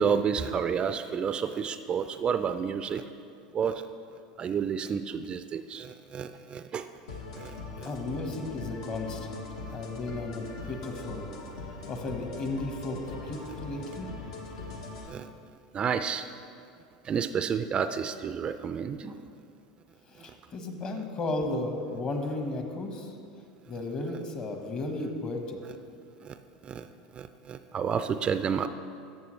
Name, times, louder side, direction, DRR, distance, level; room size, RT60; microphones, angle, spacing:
voice 1, 0.0-3.0 3.5-3.8 4.4-6.9 7.4-7.9 15.1-15.3 15.7-16.3 17.0-19.2 26.2-26.4 26.6-26.9 27.1-28.7, right 7 dB, 30° right, 10 dB, 0.4 m, -30 dB
sound 1, 7.1-15.1, left 3 dB, 70° left, 1.2 m, -41 dB
voice 2, 7.8-9.4 9.7-11.2 11.9-13.0 13.3-14.1 20.1-23.1 23.7-25.6, left 2 dB, 40° left, 4 dB, 1.4 m, -34 dB
12.5 x 7.3 x 3.2 m, 2.4 s
hypercardioid pair, 85°, 3 cm